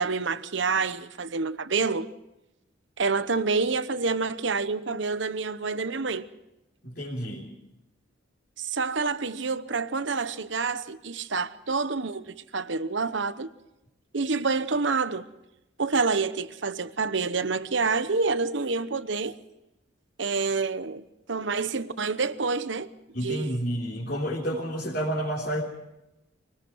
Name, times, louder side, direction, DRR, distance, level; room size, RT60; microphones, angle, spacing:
voice 1, 0.0-2.1 3.0-6.3 8.6-13.5 14.1-15.3 15.8-19.4 20.2-21.0 21.3-22.9 23.2-23.6, right 4 dB, 70° right, 0.9 m, -27 dB
voice 2, 6.8-7.5 23.1-25.6, equal, 50° left, 3.5 m, -30 dB
24.5 x 18.5 x 6.2 m
head